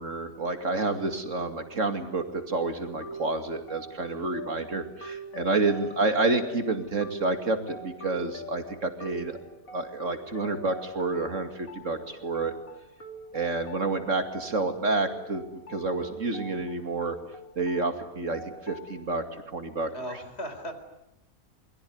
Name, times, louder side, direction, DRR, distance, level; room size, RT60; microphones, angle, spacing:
voice 1, 0.0-9.4 9.7-12.5 13.3-17.1 17.6-19.2 19.5-19.9, right 3 dB, 60° right, 7 dB, 2.8 m, -29 dB
voice 2, 0.7-1.2 5.6-6.1 19.9-20.7, equal, 45° left, 8 dB, 4.5 m, -40 dB
sound 1, 3.0-19.0, right 1 dB, 75° left, 3.1 m, -44 dB
28.0 x 22.5 x 9.6 m, 0.82 s
omnidirectional pair, 1.5 m